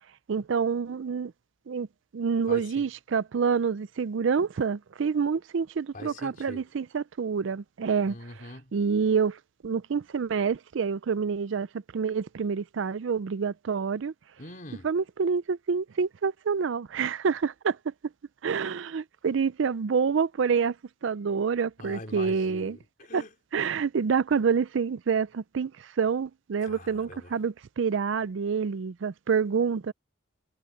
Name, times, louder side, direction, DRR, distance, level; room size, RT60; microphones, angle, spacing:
voice 1, 0.3-1.3 1.7-1.9 2.1-8.2 8.7-11.7 11.9-14.1 14.8-17.9 18.4-20.8 21.0-22.8 23.1-23.2 23.5-29.9, right 6 dB, 70° right, 0.4 m, -27 dB
voice 2, 2.5-2.9 5.9-6.7 8.0-8.7 14.4-14.9 21.8-23.3 26.6-27.3, left 2 dB, 45° left, 4.2 m, -43 dB
head